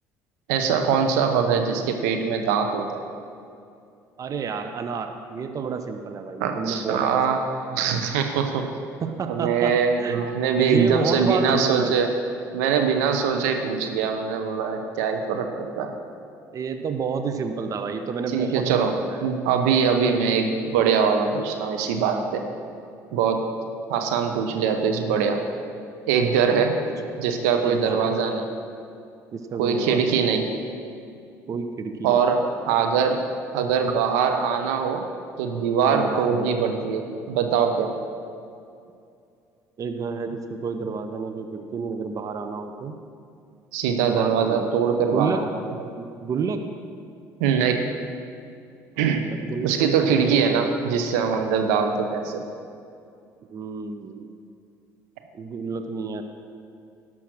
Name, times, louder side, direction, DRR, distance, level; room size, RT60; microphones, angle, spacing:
voice 1, 0.5-3.0 6.4-8.6 9.3-12.1 12.5-15.9 18.3-18.9 19.2-22.4 23.1-23.4 23.9-25.4 26.0-26.8 27.2-28.4 29.6-30.5 32.0-32.4 32.7-33.2 33.5-35.0 35.4-37.9 43.7-45.4 47.4-47.9 49.0-49.2 49.6-52.4, right 6 dB, 70° right, 5 dB, 0.8 m, -22 dB
voice 2, 4.2-7.4 9.0-10.3 10.6-12.1 16.5-19.2 26.4-26.7 27.6-28.2 29.3-30.3 31.5-32.3 35.9-36.5 39.8-42.9 44.0-45.5 46.0-46.6 49.3-50.6 53.5-54.3 55.3-56.2, right 5 dB, 40° right, 7 dB, 0.8 m, -30 dB
11.5 x 6.2 x 6.2 m, 2.5 s
hypercardioid pair, 55°, 9 cm